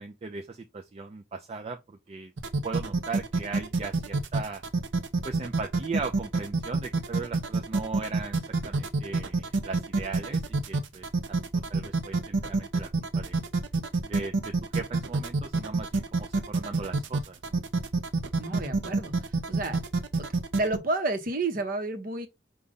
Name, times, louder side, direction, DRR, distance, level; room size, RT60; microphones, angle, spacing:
voice 1, 0.0-2.3 2.6-4.6 5.2-11.4 11.7-13.4 14.0-17.6, right 4 dB, 35° right, 0.4 m, -38 dB
sound 1, 2.4-20.8, right 3 dB, 80° right, 0.6 m, -27 dB
voice 2, 18.4-19.1 19.5-19.8 20.6-22.3, right 2 dB, 50° right, 0.9 m, -30 dB
5.2 x 2.3 x 3.6 m
head